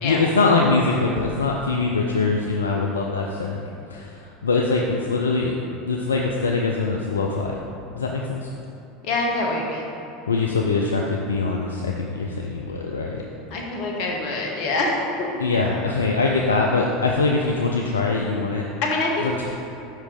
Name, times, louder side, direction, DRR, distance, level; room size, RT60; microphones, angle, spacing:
voice 1, 0.0-3.6 3.9-5.6 5.9-7.6 8.0-8.5 10.3-13.2 15.4-18.7 19.2-19.4, left 3 dB, 80° left, 0 dB, 0.4 m, -23 dB
voice 2, 9.0-9.9 13.5-15.3 18.8-19.3, left 2 dB, 55° left, -1 dB, 1.2 m, -25 dB
5.5 x 4.5 x 5.2 m, 2.9 s
figure-of-eight pair, 75°, 0 cm